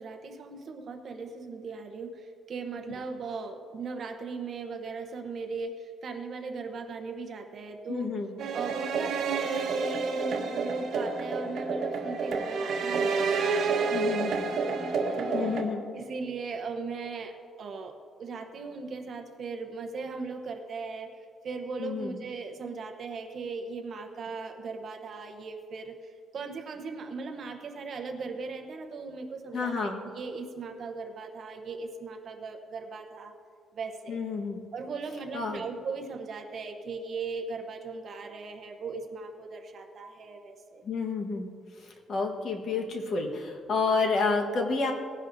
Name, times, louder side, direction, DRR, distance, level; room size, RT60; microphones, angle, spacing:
voice 1, 0.0-8.2 8.5-14.2 14.5-15.5 15.9-17.9 18.2-21.1 21.4-33.3 33.7-34.2 34.7-40.8, right 4 dB, 40° right, 5 dB, 0.9 m, -38 dB
voice 2, 7.9-8.3 13.9-14.4 15.3-15.8 21.8-22.1 29.5-30.0 34.1-34.6 35.3-35.6 40.8-41.5 41.8-44.9, left 4 dB, 45° left, 2 dB, 1.4 m, -30 dB
sound 1, 8.4-15.6, right 4 dB, 65° right, 1.2 m, -29 dB
18.5 x 10.5 x 2.7 m, 2.2 s
cardioid pair, 170°, 0 cm